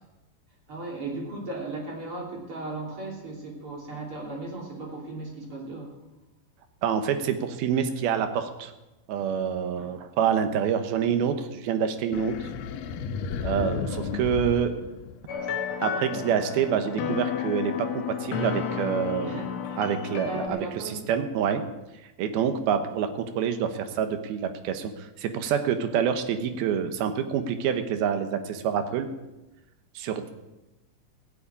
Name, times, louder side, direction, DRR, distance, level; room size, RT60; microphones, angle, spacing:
voice 1, 0.7-6.0 9.7-9.9 19.2-19.8 20.3-21.0, right 2 dB, 40° right, -1 dB, 3.6 m, -36 dB
voice 2, 6.8-8.7 9.1-12.5 13.4-14.8 15.8-19.4 19.8-20.6 20.9-21.6 22.2-29.1 30.0-30.3, right 8 dB, 90° right, 8 dB, 3.0 m, -27 dB
sound 1, 12.1-15.6, left 6 dB, 80° left, 2.6 m, -33 dB
sound 2, 15.3-20.5, left 7 dB, 65° left, 1.3 m, -31 dB
15.5 x 7.9 x 8.5 m, 1.0 s
omnidirectional pair, 4.2 m